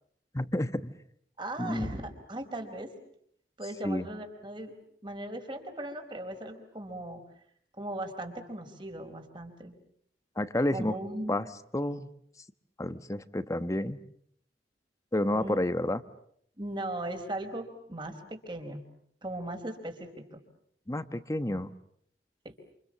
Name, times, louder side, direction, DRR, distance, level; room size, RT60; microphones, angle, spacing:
voice 1, 0.3-0.9 1.6-1.9 3.8-4.1 10.4-10.9 11.3-11.5 11.7-12.1 12.8-14.0 15.1-16.0 20.9-21.7, left 1 dB, 20° left, 12 dB, 1.1 m, -30 dB
voice 2, 1.4-2.9 3.6-4.7 5.0-7.2 7.8-9.7 10.7-11.4 15.3-15.8 16.6-18.8 19.2-20.4 22.4-22.5, right 1 dB, 30° right, 6 dB, 4.4 m, -38 dB
28.5 x 28.0 x 7.4 m, 0.67 s
head